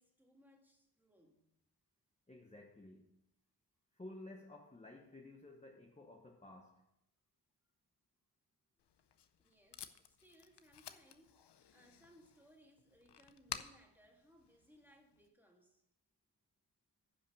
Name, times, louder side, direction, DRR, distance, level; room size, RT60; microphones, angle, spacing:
voice 1, 0.0-1.5 9.0-9.1 9.4-15.8, equal, 5° right, 1 dB, 1.9 m, -67 dB
voice 2, 2.3-3.2 3.9-6.8, left 2 dB, 15° left, 1 dB, 0.9 m, -54 dB
Packing tape duct tape, 8.8-15.3, left 9 dB, 80° left, 0.7 m, -53 dB
10.5 x 5.5 x 6.8 m, 0.82 s
wide cardioid pair, 120°, 41 cm